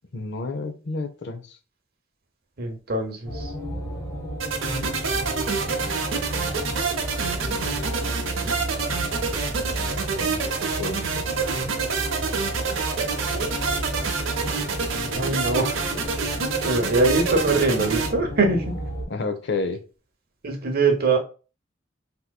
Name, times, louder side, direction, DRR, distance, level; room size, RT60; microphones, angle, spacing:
voice 1, 0.1-1.6 7.4-7.8 9.7-10.4 10.8-11.3 19.1-19.8, left 3 dB, 65° left, 0.6 m, -31 dB
voice 2, 2.6-3.5 15.1-15.8 16.6-18.8 20.4-21.2, right 3 dB, 50° right, 0.9 m, -22 dB
sound 1, 3.3-19.1, equal, 15° left, 1.4 m, -32 dB
sound 2, 4.4-18.1, right 5 dB, 90° right, 0.6 m, -27 dB
3.6 x 2.8 x 2.3 m
head